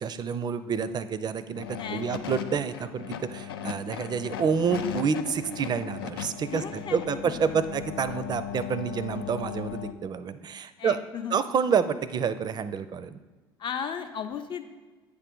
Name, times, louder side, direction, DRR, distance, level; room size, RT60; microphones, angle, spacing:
voice 1, 0.0-11.0 11.3-13.2, right 6 dB, 35° right, 13 dB, 0.4 m, -28 dB
sound 1, 1.5-9.9, left 10 dB, 80° left, 0.4 m, -37 dB
voice 2, 1.8-2.2 6.5-7.6 8.1-8.2 10.8-11.5 13.6-14.6, left 7 dB, 40° left, 7 dB, 0.7 m, -36 dB
8.2 x 3.3 x 5.3 m, 1.3 s
hypercardioid pair, 60°, 12 cm